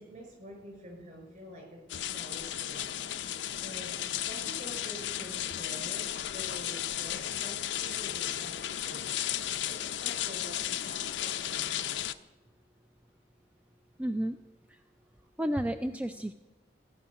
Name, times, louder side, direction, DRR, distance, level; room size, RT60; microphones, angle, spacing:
voice 1, 0.0-1.8 2.1-9.1 9.4-11.9, equal, 45° right, 0 dB, 5.9 m, -48 dB
sound 1, 1.9-12.1, left 11 dB, 85° left, 0.6 m, -34 dB
voice 2, 14.0-14.4 15.4-16.3, equal, 10° right, 8 dB, 0.3 m, -31 dB
16.0 x 6.4 x 9.8 m, 1.1 s
head